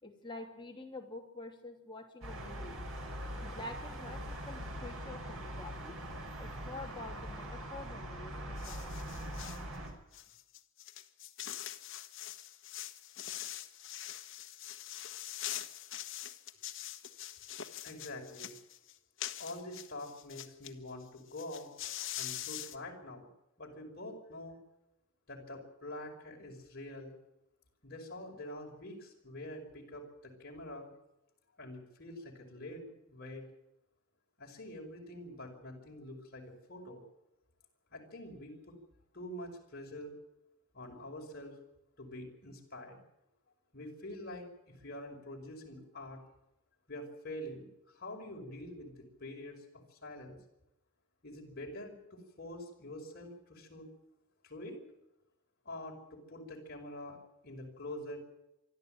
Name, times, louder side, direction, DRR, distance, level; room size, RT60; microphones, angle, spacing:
voice 1, 0.0-2.8 3.4-6.0 6.4-8.9, left 2 dB, 25° left, 1 dB, 3.2 m, -47 dB
sound 1, 2.2-9.9, equal, 80° right, 5.9 m, -42 dB
sound 2, 8.6-9.6 10.1-20.7 21.0-21.1 21.3-22.8, left 12 dB, 65° left, 1.4 m, -43 dB
voice 2, 17.8-18.6 19.4-21.7 22.2-23.3 23.6-24.6 25.3-27.1 27.8-30.9 31.6-33.5 34.4-37.0 37.9-38.8 39.1-40.1 40.7-41.6 42.0-43.0 43.7-44.5 44.8-46.2 46.9-47.7 47.9-50.4 51.2-53.9 54.4-54.8 55.7-57.2 57.4-58.2, left 1 dB, 50° left, 0 dB, 5.5 m, -46 dB
25.5 x 13.0 x 9.0 m, 0.89 s
head